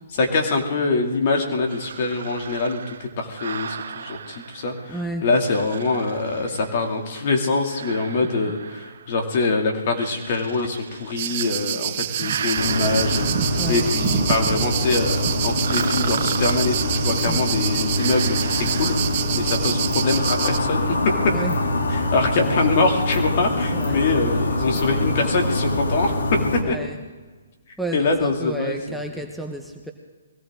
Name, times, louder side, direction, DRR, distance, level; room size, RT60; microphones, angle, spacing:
voice 1, 0.1-21.0 21.9-26.2 26.7-26.8 27.9-29.0, left 3 dB, 45° left, 2 dB, 2.6 m, -24 dB
sound 1, 1.7-5.0 5.5-7.0 7.6-9.3 9.9-11.7 12.0-14.0 15.6-17.3 18.0-19.5, right 7 dB, 65° right, 0.7 m, -35 dB
voice 2, 4.9-5.3 13.6-13.9 17.3-17.5 21.3-21.6 23.7-24.1 26.6-27.0 27.8-29.9, right 1 dB, ahead, 1 dB, 0.9 m, -31 dB
sound 2, 11.2-20.6, right 13 dB, 40° right, 0.4 m, -27 dB
sound 3, 12.5-26.6, left 1 dB, 75° left, 2.6 m, -24 dB
21.5 x 16.5 x 3.8 m, 1.3 s
hypercardioid pair, 145°, 0 cm